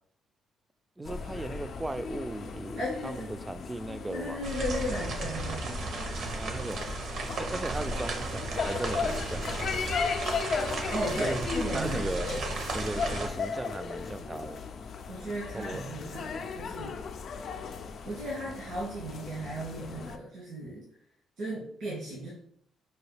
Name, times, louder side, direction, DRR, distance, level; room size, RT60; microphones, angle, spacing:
sound 1, 1.0-20.2, left 5 dB, 60° left, 0.4 m, -36 dB
voice 1, 1.0-4.5 6.3-6.8 7.4-9.6 11.2-11.5 11.7-12.3 12.7-14.6 15.5-16.1, right 2 dB, 15° right, 11 dB, 0.3 m, -37 dB
voice 2, 2.8-3.5 4.1-5.9 10.9-12.4 13.0-13.1 15.1-17.1 18.0-20.9 21.4-22.3, right 1 dB, 85° right, -7 dB, 1.7 m, -36 dB
sound 2, 4.4-13.3, right 3 dB, 65° right, 0.7 m, -35 dB
5.6 x 2.3 x 3.3 m, 0.65 s
cardioid pair, 90°, 0 cm